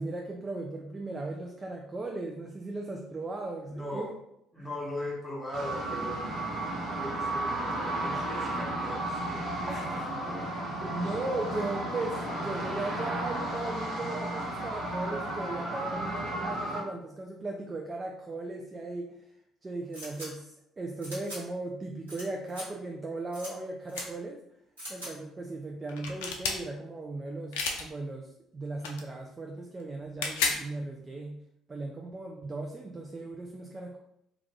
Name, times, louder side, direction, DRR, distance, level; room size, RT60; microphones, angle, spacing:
voice 1, 0.0-4.1 4.6-4.7 9.7-19.2 19.6-24.4 24.9-31.4 31.7-34.0, right 2 dB, 30° right, 1 dB, 0.4 m, -37 dB
voice 2, 3.7-4.1 4.5-6.4 6.9-10.4 10.8-11.0, left 1 dB, 5° left, -3 dB, 1.0 m, -40 dB
sound 1, 5.5-16.8, right 1 dB, 50° right, 1.0 m, -33 dB
sound 2, 19.9-20.3 21.0-21.4 22.1-22.2 22.5-22.6 23.3-23.5 23.9-24.0 24.8-25.1, equal, 90° right, 1.1 m, -41 dB
sound 3, 23.9-24.0 25.9-26.6 27.5-27.8 28.8-29.0 30.0-30.6, left 4 dB, 75° left, 0.4 m, -30 dB
2.4 x 2.3 x 3.2 m, 0.77 s
hypercardioid pair, 55°, 0 cm